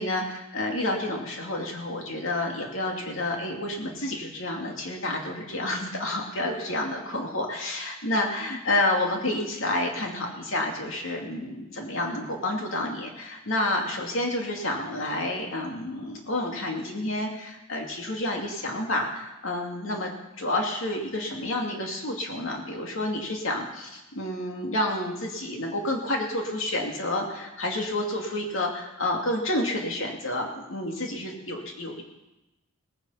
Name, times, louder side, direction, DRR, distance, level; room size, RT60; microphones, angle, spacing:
voice 1, 0.0-20.1 20.4-32.0, left 1 dB, 65° left, 1 dB, 2.5 m, -29 dB
18.5 x 9.8 x 5.7 m, 0.98 s
head